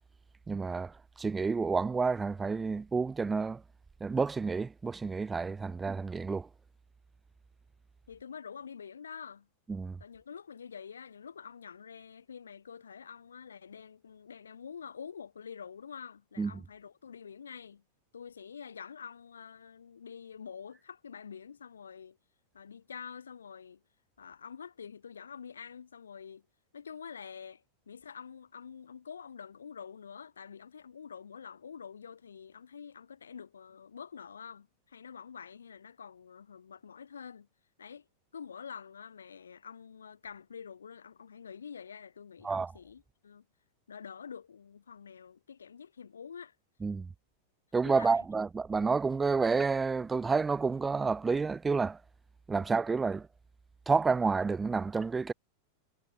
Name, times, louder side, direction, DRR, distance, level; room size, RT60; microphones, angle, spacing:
voice 1, 0.5-3.6 4.0-6.5 9.7-10.0 16.4-16.5 42.4-42.7 46.8-47.1 47.7-52.0 52.5-53.3 53.9-55.3, right 4 dB, 15° right, 0.3 m, -29 dB
voice 2, 8.1-9.5 10.0-17.8 18.1-22.2 22.5-23.8 24.2-26.4 26.7-37.5 37.8-38.1 38.3-43.4 43.9-46.6 47.8-48.2 52.5-52.7, left 7 dB, 70° left, 3.0 m, -47 dB
figure-of-eight pair, 90°, 0 cm